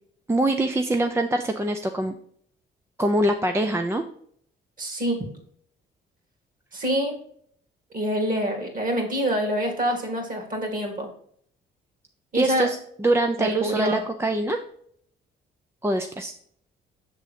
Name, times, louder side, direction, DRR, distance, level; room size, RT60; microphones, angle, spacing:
voice 1, 0.3-2.1 3.0-4.0 12.3-14.6 15.8-16.3, right 1 dB, 15° right, 5 dB, 0.4 m, -24 dB
voice 2, 4.8-5.2 6.7-7.2 7.9-11.1 12.3-12.8 13.4-14.0, equal, 45° right, 3 dB, 2.1 m, -26 dB
6.5 x 3.7 x 5.0 m, 0.64 s
cardioid pair, 90°, 20 cm